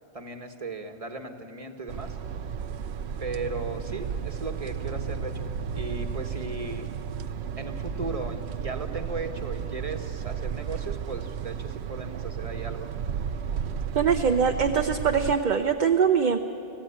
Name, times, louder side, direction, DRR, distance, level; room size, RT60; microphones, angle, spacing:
voice 1, 0.1-2.2 3.2-6.9 7.6-12.9, right 3 dB, 35° right, 6 dB, 1.4 m, -36 dB
sound 1, 1.9-15.4, right 7 dB, 85° right, 0.9 m, -33 dB
voice 2, 13.9-16.4, right 6 dB, 50° right, 5 dB, 0.8 m, -22 dB
25.5 x 15.5 x 8.6 m, 2.8 s
omnidirectional pair, 1.1 m